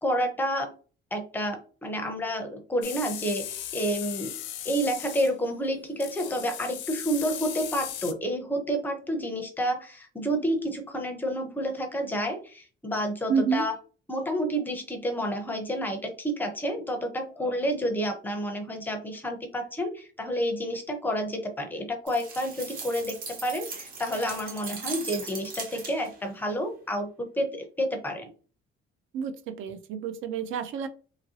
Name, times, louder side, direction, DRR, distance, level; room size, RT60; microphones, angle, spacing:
voice 1, 0.0-0.7 1.1-4.3 4.6-13.7 14.1-28.3, equal, 10° left, 0.5 m, -30 dB
sound 1, 2.8-5.3 6.0-8.1, left 11 dB, 70° left, 0.4 m, -37 dB
voice 2, 13.3-13.7 29.1-30.9, right 6 dB, 80° right, 0.5 m, -29 dB
sound 2, 22.1-26.2, right 4 dB, 45° right, 0.9 m, -39 dB
3.0 x 2.6 x 2.7 m
cardioid pair, 180°, 20 cm